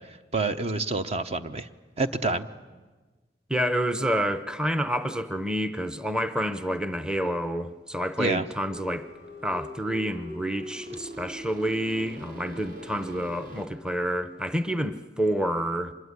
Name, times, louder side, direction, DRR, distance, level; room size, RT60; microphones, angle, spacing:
voice 1, 0.3-1.7 2.0-2.5 8.2-8.4, right 3 dB, 35° right, 0.9 m, -27 dB
voice 2, 3.5-9.1 9.4-15.9, equal, 5° right, 0.8 m, -28 dB
sound 1, 8.6-13.6, equal, 55° right, 3.6 m, -42 dB
25.0 x 21.0 x 9.6 m
head